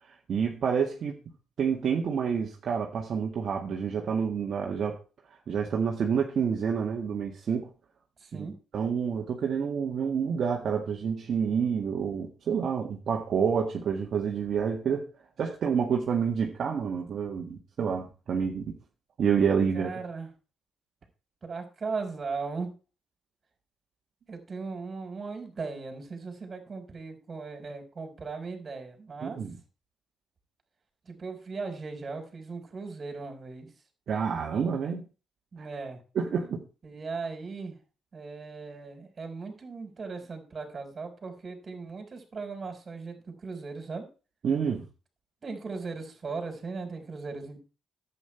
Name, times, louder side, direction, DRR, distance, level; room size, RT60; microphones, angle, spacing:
voice 1, 0.3-1.2 1.6-5.0 5.5-7.7 8.3-8.5 8.7-15.1 15.4-18.8 19.2-19.9 29.2-29.6 34.1-35.0 36.2-36.6 44.4-44.9, right 6 dB, 55° right, 0 dB, 1.8 m, -28 dB
voice 2, 8.2-8.6 19.7-20.3 21.4-22.7 24.3-29.4 31.1-33.7 35.5-36.0 36.8-37.8 38.1-44.1 45.4-47.6, right 4 dB, 40° right, 6 dB, 4.1 m, -38 dB
11.0 x 8.7 x 4.4 m, 0.34 s
cardioid pair, 90°, 0 cm